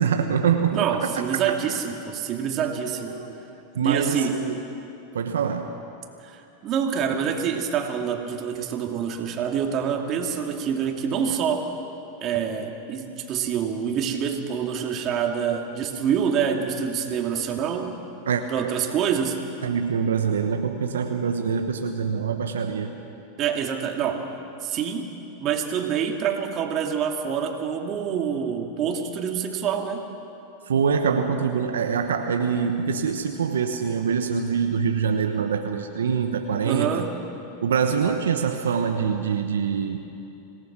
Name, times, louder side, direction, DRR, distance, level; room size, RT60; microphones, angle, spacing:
voice 1, 0.0-1.1 1.5-1.6 3.1-3.4 3.7-4.6 5.1-5.8 18.3-18.4 19.6-22.9 30.7-37.1 37.6-40.1, right 6 dB, 85° right, 5 dB, 1.1 m, -24 dB
voice 2, 0.7-3.2 3.8-4.4 6.2-11.7 12.2-17.9 18.5-19.4 23.4-24.3 24.6-25.1 25.4-30.1 36.6-37.1, right 7 dB, 40° right, 3 dB, 2.5 m, -26 dB
26.0 x 18.5 x 6.2 m, 2.8 s
hypercardioid pair, 105°, 0 cm